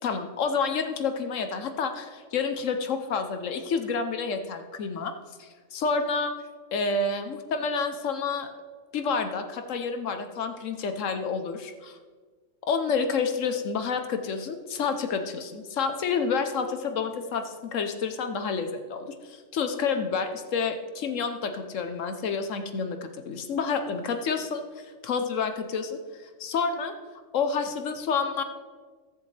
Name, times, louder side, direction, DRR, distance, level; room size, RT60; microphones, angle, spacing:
voice 1, 0.0-5.1 5.4-6.3 6.7-8.5 8.9-12.0 12.7-26.9 27.3-28.4, left 5 dB, 70° left, 7 dB, 1.1 m, -29 dB
16.0 x 7.3 x 3.3 m, 1.5 s
omnidirectional pair, 1.4 m